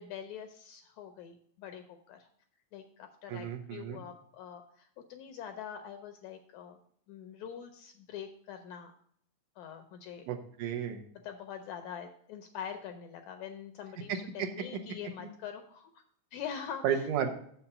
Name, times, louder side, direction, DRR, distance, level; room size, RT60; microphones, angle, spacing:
voice 1, 0.0-2.3 2.7-6.8 7.1-8.9 9.6-10.3 11.2-16.0 16.3-17.1, left 8 dB, 80° left, 6 dB, 1.7 m, -44 dB
voice 2, 3.3-4.0 10.3-11.0 14.1-14.5 15.2-15.3 16.8-17.3, right 8 dB, 75° right, 4 dB, 2.1 m, -33 dB
7.2 x 5.8 x 5.3 m, 0.64 s
omnidirectional pair, 3.8 m